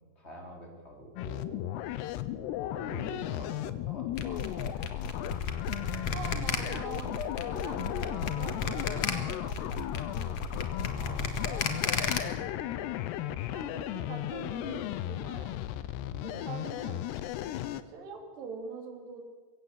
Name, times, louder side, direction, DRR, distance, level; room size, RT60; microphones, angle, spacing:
voice 1, 0.2-1.7 2.7-5.0 11.0-12.5 16.0-16.7, left 1 dB, 15° left, 0 dB, 3.7 m, -46 dB
sound 1, 1.2-17.8, left 12 dB, 85° left, 2.9 m, -35 dB
sound 2, 4.2-12.2, left 5 dB, 50° left, 2.1 m, -33 dB
voice 2, 6.1-10.4 13.5-15.6 16.2-17.0 17.9-19.2, right 5 dB, 80° right, 3 dB, 5.0 m, -44 dB
22.5 x 16.5 x 8.1 m, 1.5 s
omnidirectional pair, 4.8 m